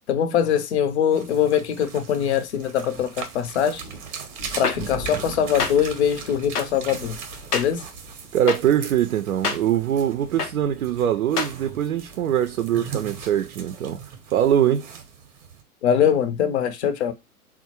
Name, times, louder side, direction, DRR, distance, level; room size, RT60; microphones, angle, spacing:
voice 1, 0.1-3.8 4.6-7.2 7.5-7.8 15.8-17.1, left 8 dB, 50° left, 0.6 m, -22 dB
sound 1, 1.1-15.6, right 6 dB, 30° right, 0.7 m, -39 dB
sound 2, 2.9-13.5, right 1 dB, 10° right, 0.3 m, -42 dB
sound 3, 4.6-4.7 5.6-5.7 6.5-6.6 7.5-7.6 8.5-8.6 9.4-9.6 10.4-10.5 11.4-11.5, left 5 dB, 85° left, 0.7 m, -24 dB
voice 2, 8.3-14.0 14.3-14.9, right 10 dB, 65° right, 0.5 m, -22 dB
3.7 x 2.1 x 2.7 m
figure-of-eight pair, 115°, 45 cm